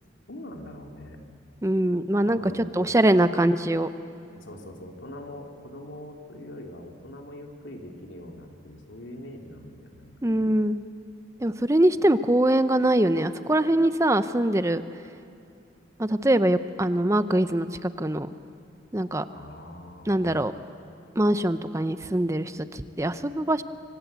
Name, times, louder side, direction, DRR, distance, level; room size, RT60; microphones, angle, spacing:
voice 1, 0.3-1.2 2.3-3.6 4.3-10.6 19.3-20.3, left 1 dB, 85° left, 2 dB, 3.0 m, -42 dB
voice 2, 1.6-3.9 10.2-10.8 11.4-14.8 16.0-18.3 18.9-19.2 20.1-20.5 21.2-23.6, right 1 dB, 15° right, 12 dB, 0.6 m, -23 dB
26.5 x 25.5 x 8.2 m, 2.5 s
head